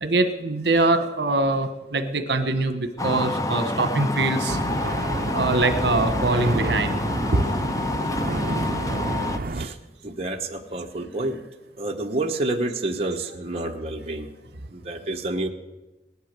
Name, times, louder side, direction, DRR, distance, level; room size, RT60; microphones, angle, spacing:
voice 1, 0.0-4.6 5.3-6.9 7.3-7.4 10.9-11.1, right 2 dB, 70° right, 9 dB, 1.3 m, -23 dB
sound 1, 3.0-9.4, left 2 dB, 20° left, 0.6 m, -27 dB
sound 2, 4.5-9.7, right 2 dB, 50° right, 0.7 m, -30 dB
voice 2, 10.0-11.4 11.8-14.3 14.7-15.5, right 2 dB, 35° right, 2 dB, 1.1 m, -29 dB
18.5 x 11.0 x 6.8 m, 1.1 s
head